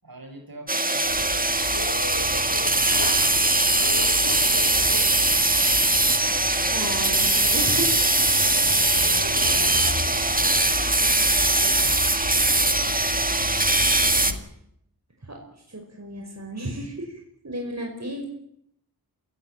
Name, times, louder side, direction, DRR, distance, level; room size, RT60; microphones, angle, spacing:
voice 1, 0.0-1.2 2.7-6.3 8.5-12.6, right 2 dB, 60° right, 5 dB, 6.5 m, -45 dB
sound 1, 0.7-14.3, right 2 dB, 20° right, 1.9 m, -21 dB
sound 2, 1.0-14.4, left 2 dB, 75° left, 3.4 m, -35 dB
voice 2, 6.7-8.0 15.2-15.4 15.7-18.2, right 1 dB, 45° right, 2 dB, 5.2 m, -33 dB
26.5 x 17.0 x 9.1 m, 0.73 s
wide cardioid pair, 50°, 39 cm